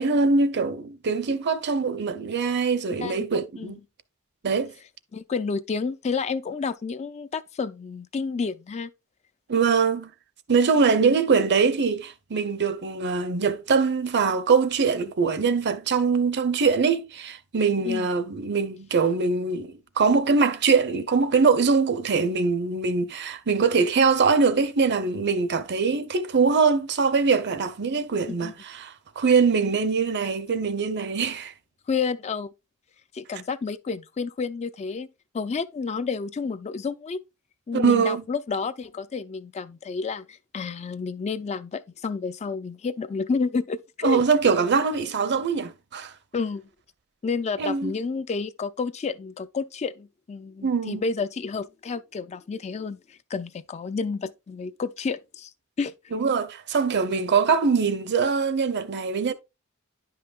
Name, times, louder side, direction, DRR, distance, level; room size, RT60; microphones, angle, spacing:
voice 1, 0.0-3.8 4.4-4.7 9.5-10.1 10.5-31.5 37.7-38.2 44.0-46.1 47.6-47.9 50.6-51.0 56.1-59.3, right 5 dB, 55° right, 0.7 m, -23 dB
voice 2, 5.1-8.9 17.8-18.1 28.4-28.5 31.9-32.5 33.1-35.1 35.3-37.2 37.7-44.2 46.3-46.7 47.2-55.5 55.8-55.9, left 5 dB, 30° left, 0.3 m, -30 dB
10.0 x 5.6 x 2.3 m
head